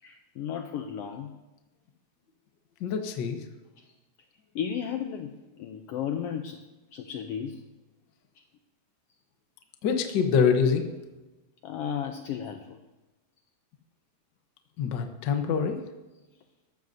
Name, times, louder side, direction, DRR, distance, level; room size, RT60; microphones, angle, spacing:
voice 1, 0.0-1.3 3.8-3.9 4.5-7.6 8.3-8.4 11.6-12.8, left 8 dB, 90° left, 6 dB, 1.3 m, -34 dB
voice 2, 2.8-3.4 9.8-10.9 14.8-15.8, left 6 dB, 70° left, 5 dB, 1.0 m, -25 dB
14.5 x 13.0 x 2.7 m, 1.1 s
omnidirectional pair, 3.4 m